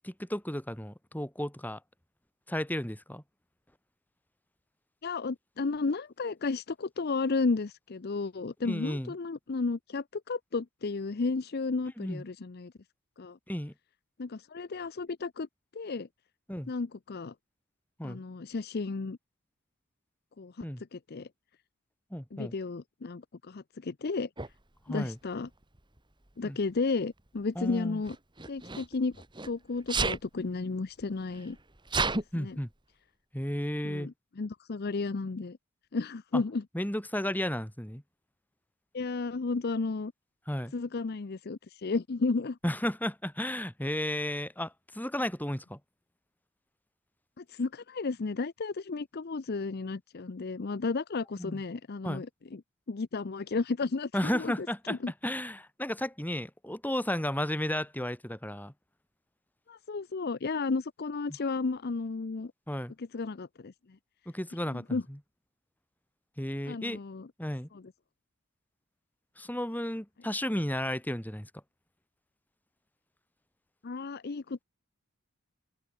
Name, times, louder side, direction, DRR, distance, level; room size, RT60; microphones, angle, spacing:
voice 1, 0.0-1.8 2.5-3.2 8.6-9.1 12.0-12.2 13.5-13.7 16.5-16.7 18.0-18.2 20.6-20.8 22.1-22.5 24.9-25.2 26.4-26.6 27.6-28.0 32.3-32.7 33.3-34.1 36.3-36.4 36.7-38.0 40.5-40.7 42.6-45.8 51.4-51.6 52.0-52.2 54.1-58.7 62.7-62.9 64.3-65.2 66.4-67.0 67.4-67.7 69.4-71.5, left 1 dB, 10° left, 3.5 m, -33 dB
voice 2, 5.0-12.7 13.2-13.4 14.2-15.5 15.7-16.1 16.7-17.3 18.0-19.2 20.4-20.7 20.9-21.3 22.3-24.3 24.9-25.5 26.4-28.2 28.5-29.2 29.4-31.6 32.1-32.6 33.8-35.6 35.9-36.6 38.9-40.1 40.7-42.6 47.4-52.6 52.9-55.1 59.7-62.5 63.0-63.7 64.7-65.0 66.6-67.3 67.7-67.8 73.8-74.6, left 3 dB, 45° left, 0.6 m, -33 dB
Sneeze, 24.4-24.5 25.6-26.0 28.0-29.5 29.9-30.3 31.0-31.1 31.3-32.2, right 3 dB, 20° right, 2.6 m, -31 dB
open air
head